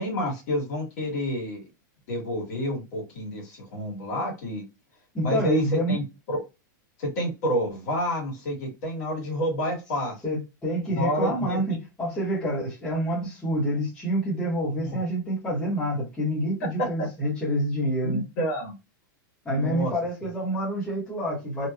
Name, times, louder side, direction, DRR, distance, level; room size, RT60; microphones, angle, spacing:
voice 1, 0.0-1.6 2.1-4.6 5.2-6.4 7.0-10.1 10.9-11.6 14.8-15.0 17.0-17.1 18.0-18.8 19.5-19.9 20.2-20.3, equal, 50° left, 1.6 m, -29 dB
voice 2, 5.1-6.0 10.2-18.2 19.4-21.7, equal, 5° left, 1.1 m, -27 dB
2.9 x 2.3 x 2.3 m
supercardioid pair, 170°, 11 cm